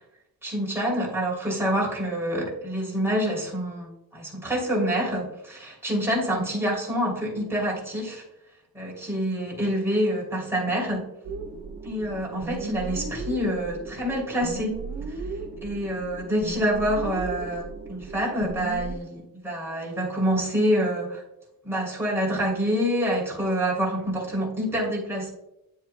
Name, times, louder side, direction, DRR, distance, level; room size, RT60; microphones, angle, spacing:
voice 1, 0.4-8.2 8.7-11.1 11.8-14.8 15.6-17.6 17.9-21.2 21.6-25.3, equal, 5° right, -4 dB, 3.0 m, -27 dB
sound 1, 11.2-19.0, right 4 dB, 85° right, 1.6 m, -36 dB
9.9 x 7.2 x 2.2 m, 0.86 s
cardioid pair, 85°, 37 cm